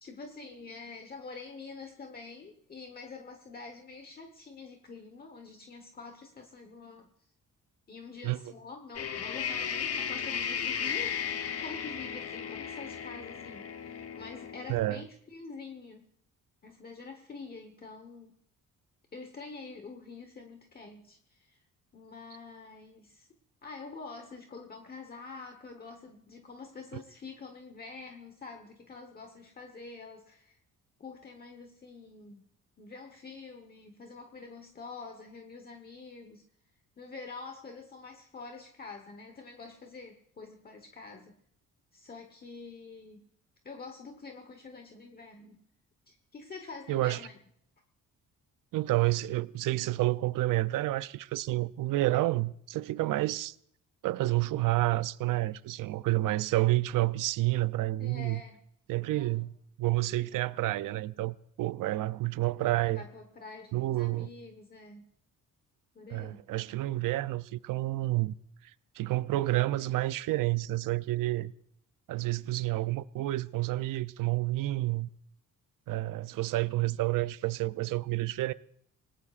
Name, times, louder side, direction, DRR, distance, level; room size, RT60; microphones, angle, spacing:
voice 1, 0.0-7.1 7.9-11.2 11.6-16.1 16.6-18.3 19.1-21.6 21.9-23.3 23.6-30.6 31.0-32.4 32.8-36.4 37.0-41.4 41.9-43.2 43.6-45.6 46.1-47.4 58.0-58.6 59.1-59.4 61.9-62.0 62.9-65.1 65.9-66.4 69.8-69.9, left 4 dB, 30° left, 1.2 m, -46 dB
sound 1, 8.9-14.7, left 7 dB, 45° left, 1.0 m, -35 dB
voice 2, 14.7-15.0 26.9-27.0 46.9-47.2 48.7-53.5 54.0-58.4 58.9-59.5 59.8-63.0 63.7-64.3 66.1-68.3 69.0-71.5 72.1-75.1 75.9-78.5, right 17 dB, 80° right, 0.6 m, -29 dB
27.0 x 19.5 x 2.5 m
cardioid pair, 150°, 32 cm